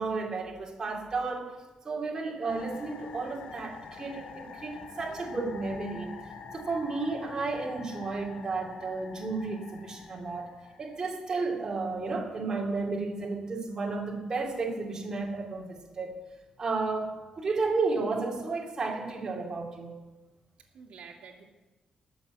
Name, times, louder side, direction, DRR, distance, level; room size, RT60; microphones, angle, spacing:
voice 1, 0.0-1.5 1.8-6.2 6.5-10.5 10.8-16.2 16.6-20.0, right 3 dB, 30° right, -1 dB, 2.5 m, -32 dB
sound 1, 2.5-11.3, left 5 dB, 70° left, 1.9 m, -46 dB
voice 2, 20.7-21.4, right 6 dB, 65° right, 1 dB, 2.2 m, -49 dB
20.0 x 7.4 x 8.0 m, 1.1 s
wide cardioid pair, 160°, 2 cm